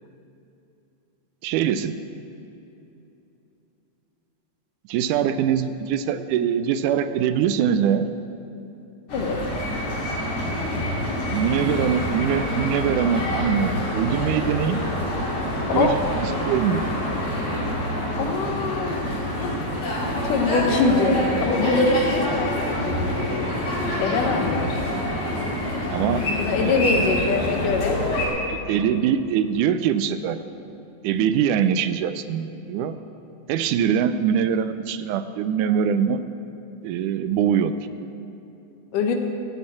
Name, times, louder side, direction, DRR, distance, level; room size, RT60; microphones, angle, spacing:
voice 1, 1.4-2.0 4.9-8.1 11.3-14.8 15.7-16.0 16.4-16.8 25.9-26.2 26.6-26.7 28.5-30.4 31.0-33.0 33.5-36.2 36.8-37.8, right 8 dB, 80° right, 11 dB, 2.0 m, -23 dB
sound 1, 9.1-28.3, left 1 dB, 50° left, 3.7 m, -26 dB
voice 2, 18.2-19.1 19.3-19.7 20.1-23.0 24.0-24.8 26.4-28.0 38.9-39.2, left 4 dB, 85° left, 4 dB, 2.8 m, -23 dB
15.0 x 7.5 x 8.5 m, 2.9 s
omnidirectional pair, 3.6 m